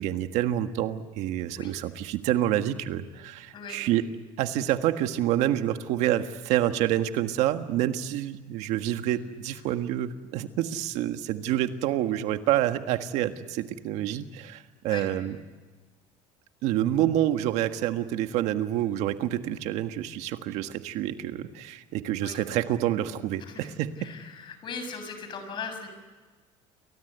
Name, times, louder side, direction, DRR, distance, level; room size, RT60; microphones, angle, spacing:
voice 1, 0.0-4.0 4.4-15.4 16.6-23.9, right 12 dB, 70° right, 8 dB, 1.6 m, -27 dB
voice 2, 23.4-25.9, left 5 dB, 40° left, 8 dB, 6.8 m, -39 dB
29.5 x 23.5 x 8.1 m, 1.3 s
cardioid pair, 140°, 12 cm